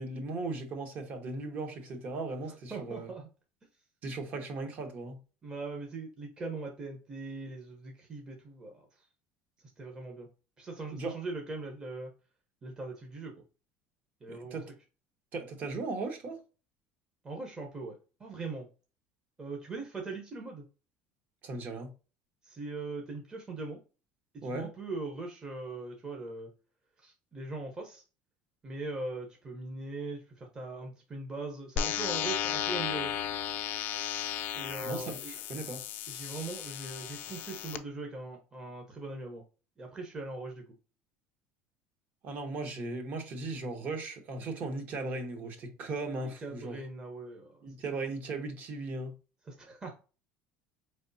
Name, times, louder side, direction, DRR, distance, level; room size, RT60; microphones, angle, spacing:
voice 1, 0.0-3.1 4.0-5.2 10.9-11.1 14.3-14.7 15.3-16.4 21.4-21.9 24.4-24.7 34.8-35.8 42.2-46.8 47.6-49.1, right 3 dB, 40° right, 1.1 m, -37 dB
voice 2, 2.7-3.3 5.4-9.0 9.8-10.3 10.6-12.1 12.6-13.3 14.2-14.6 17.2-18.7 19.4-20.6 22.4-23.8 24.3-26.5 27.0-28.0 28.6-33.1 34.5-35.3 36.1-39.4 39.8-40.6 46.2-47.6 49.5-49.9, right 3 dB, 20° right, 0.9 m, -40 dB
sound 1, 31.8-37.8, left 10 dB, 55° left, 0.5 m, -35 dB
4.7 x 3.4 x 2.7 m
cardioid pair, 140°, 4 cm